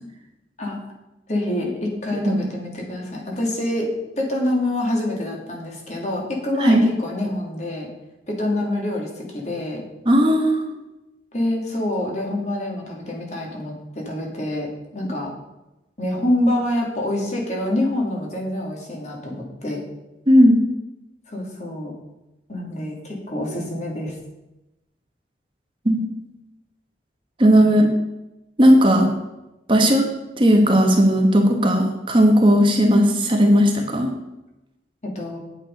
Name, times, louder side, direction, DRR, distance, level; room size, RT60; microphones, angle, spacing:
voice 1, 1.3-3.9 4.1-7.9 8.3-9.8 11.3-15.3 16.0-19.8 21.3-21.9 22.5-24.1 27.5-27.8 29.8-29.9 35.0-35.4, left 1 dB, 40° left, -1 dB, 2.6 m, -26 dB
voice 2, 10.0-10.7 20.3-20.6 25.8-26.0 27.4-27.9 28.6-29.1 29.7-30.0 30.4-34.1, equal, 30° right, 2 dB, 1.3 m, -16 dB
9.1 x 8.8 x 5.4 m, 0.96 s
head